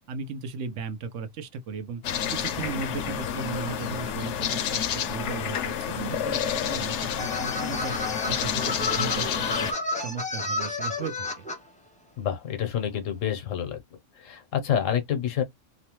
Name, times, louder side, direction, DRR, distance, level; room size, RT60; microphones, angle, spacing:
voice 1, 0.1-2.0 2.3-8.0 8.3-11.5, right 5 dB, 75° right, 1.0 m, -36 dB
sound 1, 2.0-9.7, left 8 dB, 70° left, 0.9 m, -29 dB
sound 2, 7.2-11.6, left 2 dB, 10° left, 0.6 m, -31 dB
voice 2, 12.2-13.8 14.2-15.4, left 9 dB, 85° left, 1.2 m, -28 dB
3.1 x 2.0 x 2.9 m
omnidirectional pair, 1.3 m